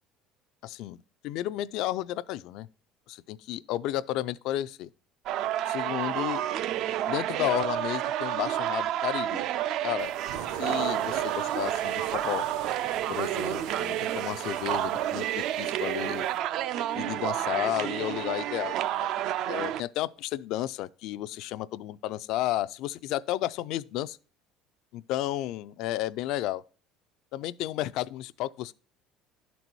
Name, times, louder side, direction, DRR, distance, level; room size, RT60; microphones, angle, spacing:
voice 1, 0.6-1.0 1.2-2.7 3.1-4.9 5.7-6.4 7.1-9.5 9.8-10.1 10.6-12.5 13.1-16.2 16.9-19.1 19.5-24.2 24.9-26.6 27.3-28.7, left 14 dB, 60° left, 0.3 m, -32 dB
sound 1, 5.3-19.8, right 12 dB, 55° right, 0.3 m, -30 dB
sound 2, 10.0-16.4, right 9 dB, 75° right, 0.8 m, -42 dB
11.5 x 4.1 x 4.5 m
cardioid pair, 150°, 0 cm